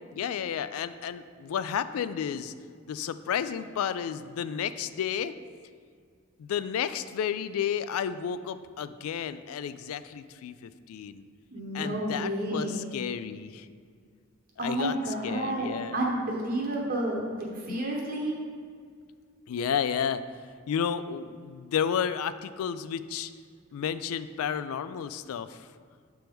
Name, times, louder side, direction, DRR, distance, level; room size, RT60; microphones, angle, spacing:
voice 1, 0.1-2.5 2.9-5.3 6.4-11.3 11.7-13.7 14.6-16.0 17.7-17.8 19.5-20.2 20.7-23.3 23.7-25.7, left 8 dB, 85° left, 14 dB, 0.3 m, -32 dB
voice 2, 11.5-12.9 14.6-18.4, right 1 dB, 40° right, -2 dB, 0.8 m, -30 dB
7.6 x 3.5 x 4.5 m, 2.1 s
head